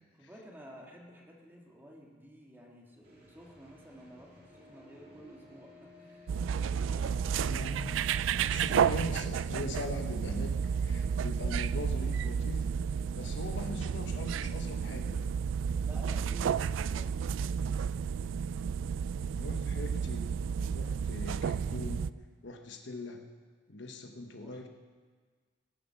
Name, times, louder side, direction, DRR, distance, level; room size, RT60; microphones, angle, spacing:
voice 1, 0.1-7.2 15.8-17.5 24.4-24.7, equal, 10° right, -2 dB, 1.9 m, -52 dB
sound 1, 3.0-15.3, left 1 dB, 55° right, 3.2 m, -57 dB
sound 2, 6.3-22.1, right 7 dB, 80° right, 0.3 m, -32 dB
voice 2, 7.3-12.6 13.1-15.3 19.3-22.1 22.4-23.3 23.7-24.7, left 2 dB, 65° left, 4 dB, 1.1 m, -41 dB
20.0 x 7.8 x 5.9 m, 1.5 s
head